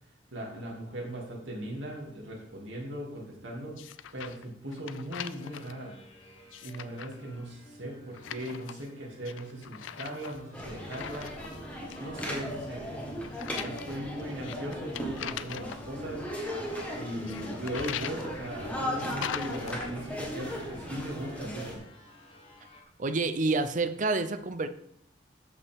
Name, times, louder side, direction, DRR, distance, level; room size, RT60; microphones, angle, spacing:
voice 1, 0.3-3.8 4.1-6.0 6.6-11.4 12.0-13.0 13.6-16.3 16.9-21.8, right 1 dB, 80° right, -3 dB, 2.6 m, -38 dB
sound 1, 3.8-4.4 4.7-5.7 6.4-7.1 8.1-8.9 9.2-11.6 11.9-12.4 13.2-15.8 17.3-18.3 19.0-19.8, left 9 dB, 80° left, 0.4 m, -41 dB
sound 2, 5.4-22.8, left 1 dB, 25° left, 1.4 m, -52 dB
sound 3, 10.5-21.8, equal, 5° left, 1.4 m, -37 dB
voice 2, 23.0-24.7, right 3 dB, 40° right, 10 dB, 0.6 m, -28 dB
13.0 x 5.5 x 3.6 m, 0.70 s
head